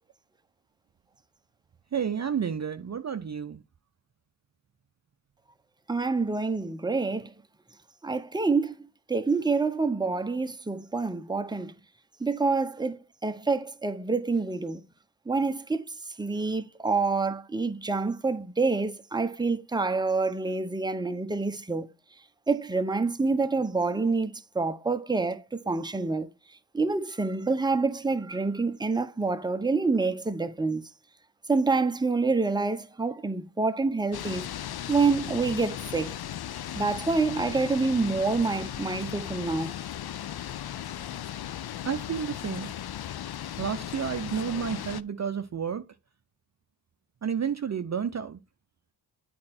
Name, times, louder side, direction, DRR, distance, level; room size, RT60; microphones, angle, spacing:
voice 1, 1.9-3.6 41.8-42.7 43.6-45.8 47.2-48.4, right 7 dB, 35° right, 0.7 m, -31 dB
voice 2, 5.9-7.3 8.0-8.7 9.1-11.7 12.2-14.8 15.3-15.8 16.2-21.9 22.5-26.3 26.7-30.8 31.5-34.4 34.9-36.1 36.7-39.7, right 3 dB, 10° right, 0.9 m, -27 dB
sound 1, 34.1-45.0, left 11 dB, 55° left, 0.6 m, -37 dB
8.5 x 4.4 x 4.3 m
supercardioid pair, 50°, 47 cm